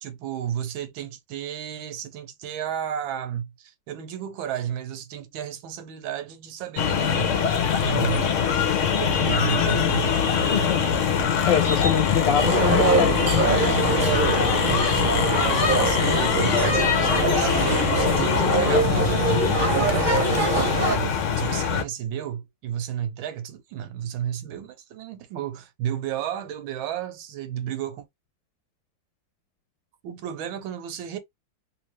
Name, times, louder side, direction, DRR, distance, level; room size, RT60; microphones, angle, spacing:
voice 1, 0.0-7.4 7.8-8.2 8.9-10.8 13.9-19.4 19.7-20.1 20.9-28.0 30.0-31.2, right 10 dB, 85° right, 1.5 m, -32 dB
sound 1, 6.8-21.8, left 7 dB, 60° left, 0.8 m, -23 dB
voice 2, 11.5-13.7, left 9 dB, 75° left, 1.2 m, -24 dB
sound 2, 12.4-21.0, right 3 dB, 30° right, 1.1 m, -24 dB
3.2 x 2.9 x 3.1 m
omnidirectional pair, 2.1 m